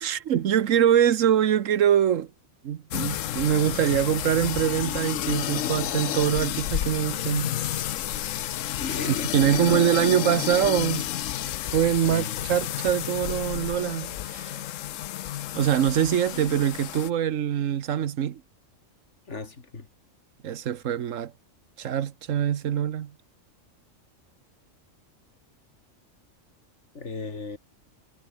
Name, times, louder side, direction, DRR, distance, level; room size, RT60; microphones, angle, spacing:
voice 1, 0.0-2.3 2.6-7.5 9.3-11.1 11.7-14.6 15.5-18.4 20.4-21.3 21.8-23.1, right 9 dB, 80° right, 1.3 m, -24 dB
sound 1, 2.9-17.1, left 12 dB, 80° left, 1.1 m, -31 dB
voice 2, 8.8-9.8 12.0-12.5 19.3-19.9 26.9-27.6, left 4 dB, 65° left, 2.8 m, -35 dB
omnidirectional pair, 1.3 m